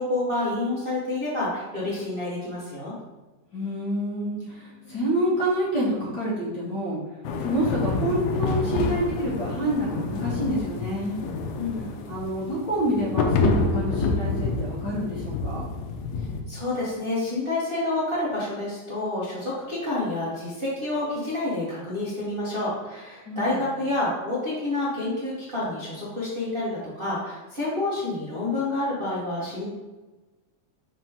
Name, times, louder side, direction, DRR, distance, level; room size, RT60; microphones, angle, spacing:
voice 1, 0.0-2.9 11.5-11.9 16.5-26.7 26.9-29.7, left 2 dB, 70° right, -10 dB, 0.5 m, -28 dB
voice 2, 3.5-7.0 7.4-11.2 12.1-15.7 23.3-23.6, right 1 dB, 60° left, -6 dB, 1.1 m, -27 dB
sound 1, 7.2-16.4, left 3 dB, 80° left, 1.9 m, -28 dB
5.9 x 3.0 x 5.3 m, 1.2 s
omnidirectional pair, 3.9 m